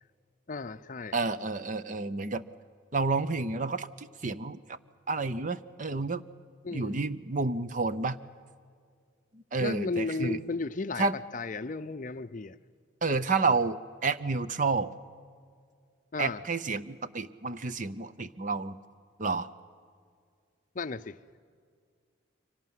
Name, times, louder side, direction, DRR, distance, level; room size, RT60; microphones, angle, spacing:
voice 1, 0.5-1.1 6.6-7.0 9.6-11.0 11.3-12.6 16.1-16.4 20.8-21.2, left 3 dB, 40° left, 0.6 m, -34 dB
voice 2, 1.1-2.4 2.9-4.8 5.1-6.2 6.7-8.2 9.3-10.4 11.0-11.2 13.0-14.9 16.2-18.8 19.2-19.5, right 3 dB, 40° right, 0.7 m, -30 dB
25.0 x 18.0 x 9.4 m
head